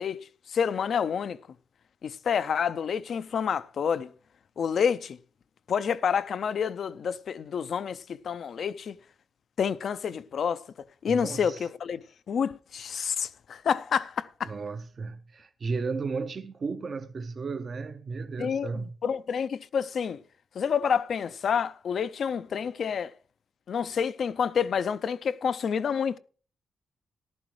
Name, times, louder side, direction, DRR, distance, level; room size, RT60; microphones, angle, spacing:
voice 1, 0.0-1.4 2.0-4.1 4.6-5.2 5.7-9.0 9.6-10.7 11.0-12.0 12.3-14.5 18.4-20.2 20.5-23.1 23.7-26.2, left 7 dB, 65° left, 0.5 m, -28 dB
voice 2, 11.1-11.7 14.5-18.9, right 4 dB, 45° right, 0.6 m, -34 dB
14.0 x 11.5 x 3.2 m
cardioid pair, 85°, 0 cm